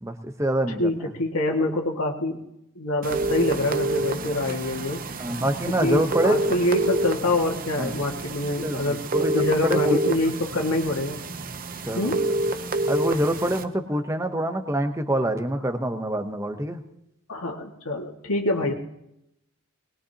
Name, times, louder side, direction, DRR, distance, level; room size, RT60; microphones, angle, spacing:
voice 1, 0.0-0.9 1.6-1.7 5.2-6.4 7.8-7.9 8.6-10.0 11.9-12.1 12.9-16.8 18.6-18.7, right 1 dB, 15° right, 7 dB, 0.9 m, -26 dB
voice 2, 0.8-2.4 2.8-5.0 5.8-9.0 9.3-11.2 11.9-12.2 17.3-18.7, left 1 dB, 85° left, 2 dB, 2.0 m, -25 dB
sound 1, 3.0-13.6, right 2 dB, 40° right, 0.7 m, -28 dB
21.0 x 20.0 x 2.9 m, 0.82 s
head